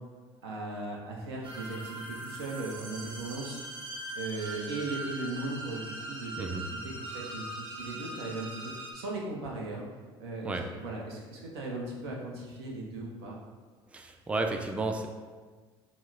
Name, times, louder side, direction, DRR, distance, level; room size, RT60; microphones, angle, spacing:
voice 1, 0.4-3.6 4.1-8.6 8.9-9.8 10.2-13.4, right 2 dB, 85° right, -2 dB, 0.6 m, -38 dB
sound 1, 1.4-8.9, right 2 dB, 40° right, 0.8 m, -41 dB
voice 2, 13.9-15.1, right 3 dB, 10° right, 4 dB, 0.3 m, -32 dB
4.9 x 2.0 x 2.4 m, 1.4 s
hypercardioid pair, 65°, 13 cm